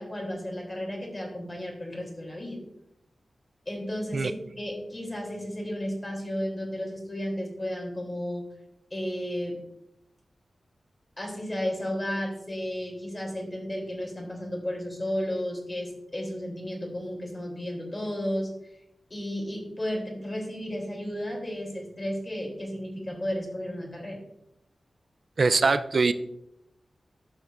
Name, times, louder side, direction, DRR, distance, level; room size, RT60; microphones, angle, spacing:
voice 1, 0.0-2.6 3.7-8.5 8.9-9.6 11.2-18.5 19.1-24.2, equal, 30° left, 0 dB, 3.2 m, -33 dB
voice 2, 25.4-26.1, right 4 dB, 60° right, 12 dB, 0.4 m, -22 dB
13.5 x 5.7 x 2.5 m, 0.80 s
cardioid pair, 50°, 0 cm